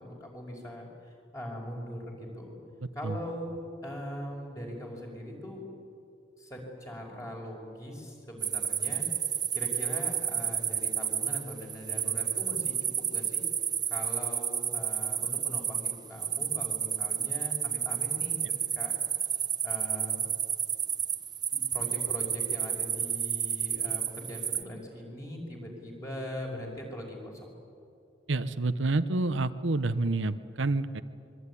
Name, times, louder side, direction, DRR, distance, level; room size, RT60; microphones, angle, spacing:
voice 1, 0.0-2.5 2.9-3.5 3.8-5.7 6.4-9.1 9.5-13.4 13.9-18.4 18.7-18.9 19.6-20.2 21.5-27.4, equal, 15° left, 0 dB, 5.6 m, -41 dB
sound 1, 8.4-24.6, right 8 dB, 20° right, 1.0 m, -31 dB
voice 2, 28.3-31.0, right 2 dB, 80° right, 11 dB, 0.9 m, -28 dB
25.5 x 23.0 x 9.9 m, 2.5 s
head